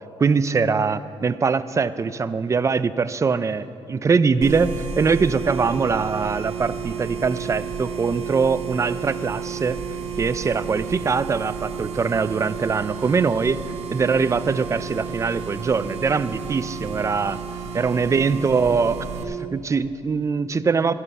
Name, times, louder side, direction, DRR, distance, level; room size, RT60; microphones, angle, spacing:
voice 1, 0.2-9.8 10.2-13.6 13.9-17.4 17.7-20.9, right 5 dB, 30° right, 14 dB, 0.4 m, -22 dB
sound 1, 4.4-19.2, right 6 dB, 80° right, 1.3 m, -32 dB
13.5 x 11.0 x 5.5 m, 2.6 s
cardioid pair, 115°, 11 cm